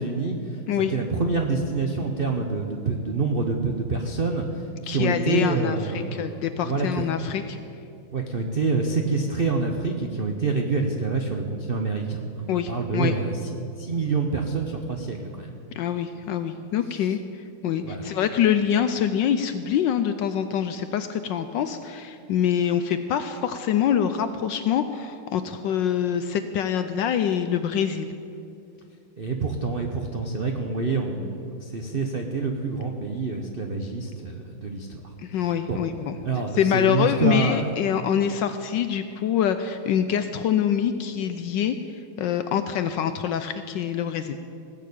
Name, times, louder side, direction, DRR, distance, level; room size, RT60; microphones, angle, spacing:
voice 1, 0.0-0.6 0.9-7.1 8.1-13.3 13.8-15.5 17.8-18.1 29.2-35.0 35.4-35.8 36.2-37.7, right 4 dB, 70° right, 3 dB, 0.5 m, -27 dB
voice 2, 4.9-7.6 12.5-13.2 15.7-28.1 35.2-36.2 36.5-44.4, left 9 dB, 75° left, 9 dB, 1.1 m, -25 dB
18.0 x 6.7 x 8.4 m, 2.5 s
omnidirectional pair, 2.4 m